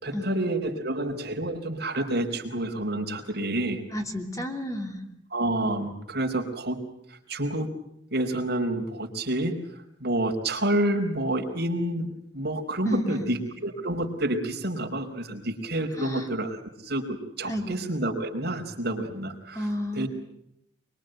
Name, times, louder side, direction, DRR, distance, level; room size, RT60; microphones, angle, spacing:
voice 1, 0.0-3.8 5.3-7.7 8.1-19.7 19.9-20.1, right 1 dB, 50° right, 2 dB, 4.9 m, -29 dB
voice 2, 3.9-5.0 12.8-13.3 16.0-16.3 17.4-17.8 19.5-20.1, equal, 15° left, 3 dB, 2.9 m, -31 dB
25.0 x 24.5 x 9.2 m, 0.76 s
head